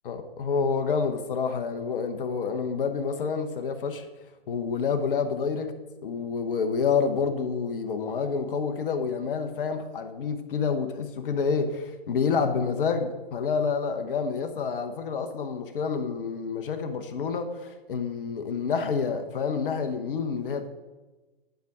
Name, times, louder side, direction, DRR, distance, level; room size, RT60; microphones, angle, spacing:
voice 1, 0.0-4.1 4.5-5.7 6.0-20.7, left 5 dB, 60° left, 6 dB, 1.0 m, -28 dB
10.5 x 4.8 x 5.4 m, 1.2 s
figure-of-eight pair, 115°, 31 cm